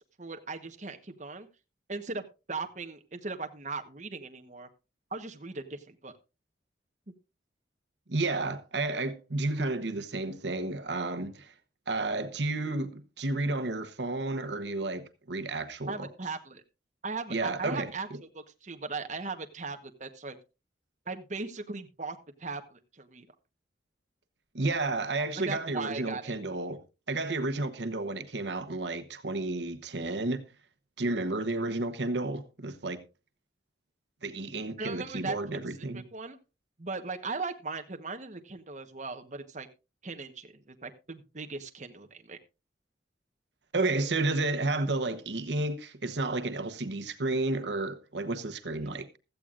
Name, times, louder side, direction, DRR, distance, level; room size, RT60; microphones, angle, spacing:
voice 1, 0.2-1.5 1.9-2.2 2.5-4.7 5.1-6.1 15.9-16.6 17.0-20.4 21.1-23.3 25.4-26.3 34.8-36.4 36.8-39.7 40.0-42.4 48.8-49.0, right 3 dB, 40° right, 1.2 m, -38 dB
voice 2, 8.1-11.5 11.9-16.1 17.3-17.9 24.5-26.8 27.1-30.4 31.0-33.0 34.2-36.0 43.7-49.2, right 2 dB, 75° right, 1.0 m, -31 dB
16.0 x 13.5 x 2.5 m
head